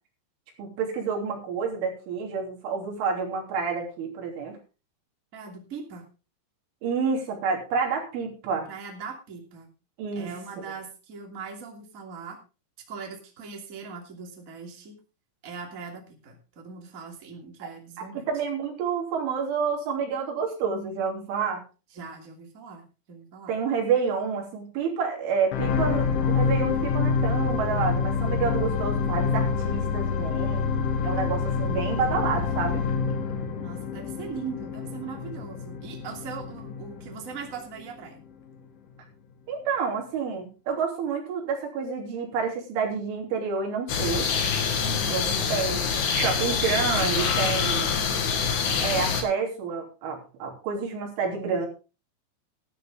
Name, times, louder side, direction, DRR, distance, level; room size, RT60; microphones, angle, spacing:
voice 1, 0.6-4.6 6.8-8.7 10.0-10.3 17.6-17.7 18.2-21.6 23.5-30.7 31.0-32.8 39.5-44.3 45.1-45.9 46.1-47.9 48.8-51.7, right 5 dB, 90° right, 1 dB, 5.7 m, -29 dB
voice 2, 5.3-6.1 8.7-9.7 10.1-12.4 12.9-15.0 15.4-18.3 21.9-23.6 33.6-38.2 44.8-45.3, right 5 dB, 25° right, 2 dB, 2.2 m, -40 dB
sound 1, 25.5-37.9 38.5-38.6, left 5 dB, 80° left, 4.2 m, -27 dB
sound 2, 43.9-49.2, left 6 dB, 55° left, 2.4 m, -25 dB
14.0 x 12.0 x 3.7 m, 0.32 s
omnidirectional pair, 5.4 m